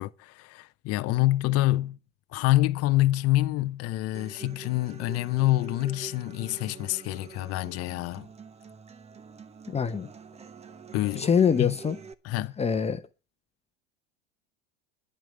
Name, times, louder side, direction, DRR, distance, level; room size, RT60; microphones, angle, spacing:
voice 1, 0.0-2.0 2.3-8.3 10.9-11.3 11.6-11.8 12.2-12.6, left 17 dB, 45° left, 0.8 m, -26 dB
Human voice / Acoustic guitar, 4.1-12.1, right 5 dB, 20° right, 1.0 m, -46 dB
voice 2, 9.7-10.1 11.2-12.0 12.6-13.0, left 7 dB, 20° left, 1.0 m, -24 dB
10.5 x 9.1 x 8.6 m
hypercardioid pair, 95°, 35 cm